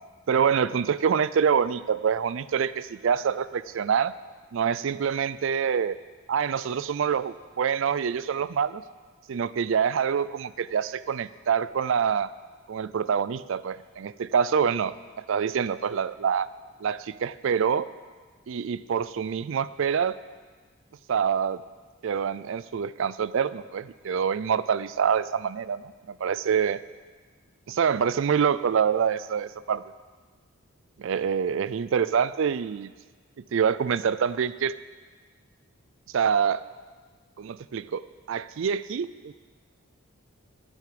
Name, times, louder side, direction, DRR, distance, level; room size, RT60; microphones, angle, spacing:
voice 1, 0.3-4.1 4.5-6.0 6.3-8.8 9.3-12.3 12.7-14.9 15.3-16.5 16.8-17.9 18.5-20.1 21.1-21.6 22.0-26.8 27.7-29.8 31.0-32.9 33.5-34.7 36.1-36.6 37.4-39.3, right 7 dB, 60° right, 16 dB, 0.3 m, -26 dB
11.5 x 9.9 x 5.0 m, 1.4 s
head